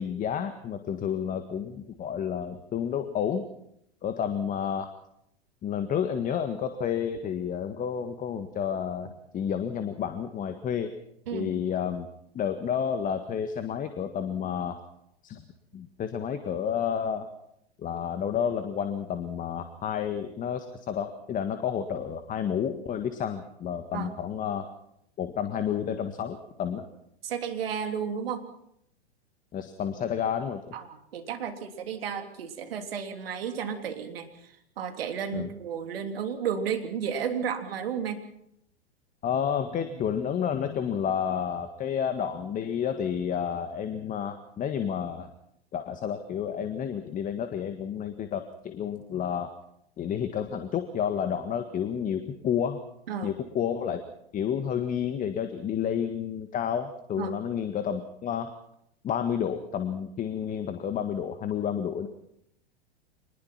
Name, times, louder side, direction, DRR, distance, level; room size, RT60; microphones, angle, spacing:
voice 1, 0.0-3.5 4.0-4.9 5.6-10.9 11.3-12.1 12.3-14.8 15.2-15.4 15.7-17.3 17.8-24.7 25.2-26.8 29.5-30.6 35.3-35.5 39.2-45.3 45.7-49.5 50.0-52.8 53.2-54.0 54.3-58.5 59.0-62.1, left 8 dB, 25° left, 8 dB, 1.7 m, -30 dB
voice 2, 27.2-28.4 30.7-38.2 53.1-53.3 57.2-57.3, right 7 dB, 65° right, 6 dB, 3.3 m, -33 dB
26.0 x 20.5 x 5.9 m, 0.76 s
figure-of-eight pair, 100°, 32 cm